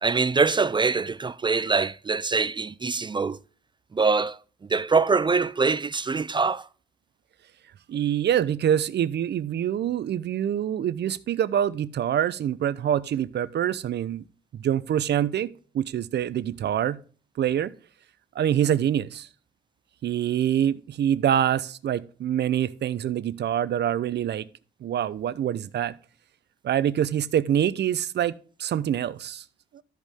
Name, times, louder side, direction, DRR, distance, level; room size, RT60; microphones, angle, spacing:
voice 1, 0.0-3.4 3.9-4.4 4.7-6.7, right 4 dB, 25° right, 0.4 m, -24 dB
voice 2, 7.9-14.2 14.5-17.0 17.4-17.7 18.3-19.3 20.0-24.5 24.8-25.9 26.6-28.3 28.6-29.4, right 10 dB, 60° right, 0.8 m, -25 dB
13.0 x 5.3 x 3.6 m
cardioid pair, 90°, 20 cm